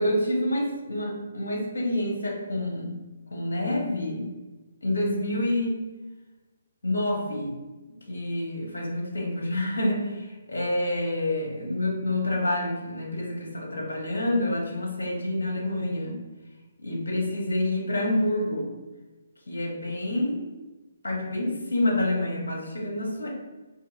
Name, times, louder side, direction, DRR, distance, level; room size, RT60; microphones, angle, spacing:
voice 1, 0.0-2.9 3.3-4.2 4.8-5.8 6.8-7.5 8.1-16.2 16.8-18.7 19.5-20.5 21.0-23.3, left 1 dB, 70° left, -1 dB, 0.8 m, -27 dB
2.8 x 2.6 x 2.5 m, 1.2 s
figure-of-eight pair, 135°, 0 cm